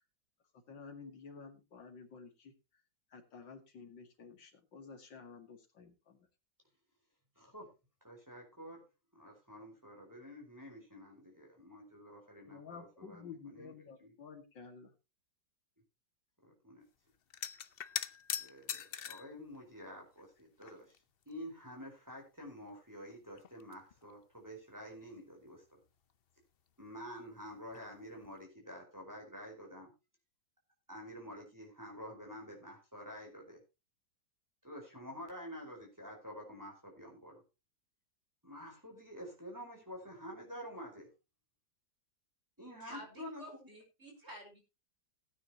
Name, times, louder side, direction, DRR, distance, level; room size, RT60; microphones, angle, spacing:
voice 1, 0.5-2.5 3.1-6.3 12.5-14.9, left 5 dB, 80° left, 5 dB, 2.8 m, -52 dB
voice 2, 7.4-7.7 8.0-8.8 9.1-13.7 14.0-14.1 16.4-16.8 18.4-20.9 21.3-25.8 26.8-29.9 30.9-33.6 34.6-37.4 38.4-41.1 42.6-43.4, equal, 10° right, 0 dB, 4.6 m, -49 dB
sound 1, 17.3-19.3 20.2-21.0 21.3-21.4 22.7-22.8 23.1-24.1 27.7-27.9 28.2-28.4, left 8 dB, 65° left, 0.5 m, -41 dB
voice 3, 42.8-44.6, equal, 35° right, 2 dB, 4.8 m, -50 dB
18.0 x 9.3 x 3.0 m, 0.27 s
omnidirectional pair, 2.0 m